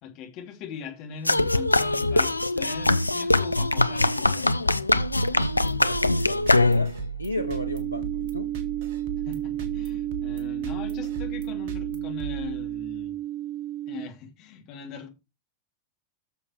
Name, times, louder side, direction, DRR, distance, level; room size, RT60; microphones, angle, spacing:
voice 1, 0.0-4.5 9.2-13.2 13.9-15.1, left 7 dB, 40° left, 2.9 m, -41 dB
sound 1, 1.3-7.1, left 2 dB, 85° left, 0.4 m, -22 dB
sound 2, 4.9-13.1, right 7 dB, 50° right, 1.7 m, -38 dB
voice 2, 5.8-6.9 7.2-8.5, left 1 dB, 90° right, 0.6 m, -33 dB
sound 3, 7.4-14.1, right 13 dB, 30° right, 0.7 m, -32 dB
15.0 x 6.9 x 3.3 m
figure-of-eight pair, 90°, 0 cm